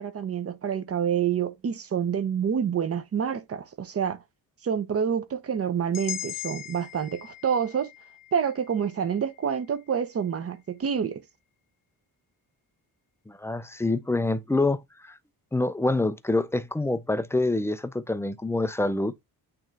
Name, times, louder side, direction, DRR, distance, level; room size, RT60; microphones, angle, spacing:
voice 1, 0.0-4.2 4.6-7.9 8.3-11.2, right 7 dB, 40° right, 0.8 m, -27 dB
sound 1, 5.9-10.0, left 12 dB, 55° left, 1.0 m, -40 dB
voice 2, 13.3-15.2 15.5-19.1, left 2 dB, 5° left, 0.3 m, -26 dB
8.9 x 3.1 x 3.4 m
wide cardioid pair, 170°, 38 cm